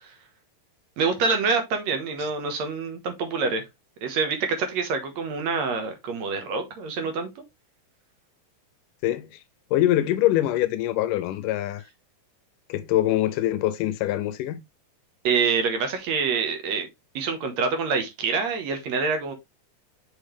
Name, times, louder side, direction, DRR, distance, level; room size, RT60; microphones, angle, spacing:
voice 1, 1.0-3.6 4.0-7.4 15.2-16.9 17.2-19.3, right 5 dB, 60° right, 2.2 m, -26 dB
voice 2, 9.0-9.4 9.7-11.9 12.7-14.6, left 14 dB, 80° left, 2.0 m, -24 dB
6.3 x 5.3 x 3.2 m
omnidirectional pair, 4.0 m